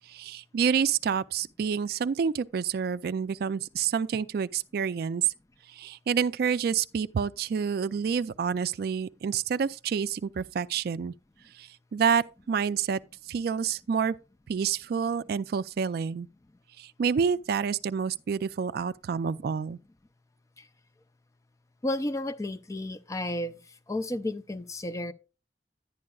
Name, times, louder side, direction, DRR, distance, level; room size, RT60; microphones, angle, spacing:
voice 1, 0.1-5.3 5.7-11.1 11.5-13.0 13.3-14.2 14.5-16.3 16.8-19.8, right 6 dB, 60° right, 0.3 m, -28 dB
voice 2, 21.8-23.6 23.9-25.1, left 1 dB, 20° left, 0.4 m, -32 dB
11.0 x 9.6 x 2.3 m
head